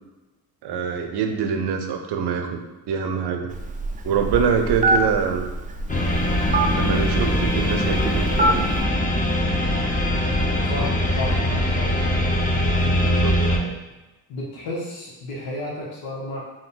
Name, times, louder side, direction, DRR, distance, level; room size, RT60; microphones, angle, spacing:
voice 1, 0.6-3.5 4.0-5.5 6.8-8.6 13.0-13.4, right 6 dB, 65° right, 5 dB, 0.7 m, -24 dB
Telephone, 3.5-8.8, right 2 dB, 20° right, 0.3 m, -25 dB
sound 1, 5.9-13.6, equal, 20° left, 0.7 m, -22 dB
voice 2, 10.6-11.9 13.4-13.7 14.3-16.4, left 1 dB, 85° left, -5 dB, 1.1 m, -32 dB
3.8 x 2.2 x 3.9 m, 1.1 s
supercardioid pair, 65°, 44 cm